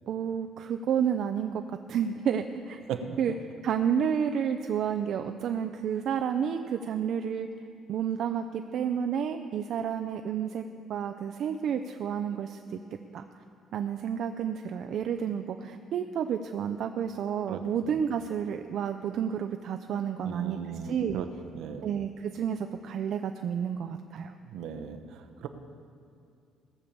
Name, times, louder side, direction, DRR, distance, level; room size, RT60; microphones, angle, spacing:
voice 1, 0.1-2.8 3.2-3.3 3.6-7.5 7.9-10.6 10.9-12.8 13.1-13.3 13.7-21.2 21.8-24.3, right 8 dB, 50° right, 7 dB, 0.5 m, -30 dB
voice 2, 17.5-18.0 20.2-21.3 21.5-21.9 24.4-25.5, right 7 dB, 70° right, 7 dB, 1.0 m, -37 dB
17.5 x 6.9 x 7.3 m, 2.6 s
cardioid pair, 155°, 0 cm